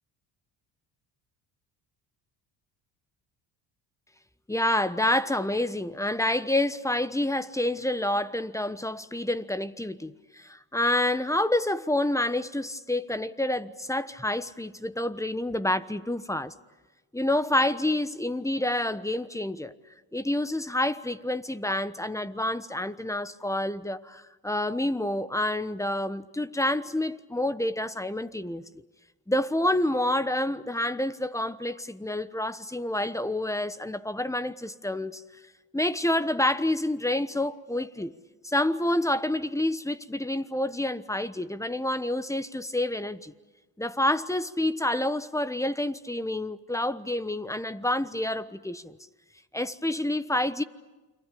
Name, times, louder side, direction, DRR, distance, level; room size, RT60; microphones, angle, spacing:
voice 1, 4.5-16.5 17.1-19.7 20.1-28.6 29.3-35.2 35.7-38.1 38.4-43.3 43.8-49.0 49.5-50.6, left 1 dB, 5° left, 1.1 m, -28 dB
29.0 x 23.5 x 8.5 m
supercardioid pair, 80°, 42 cm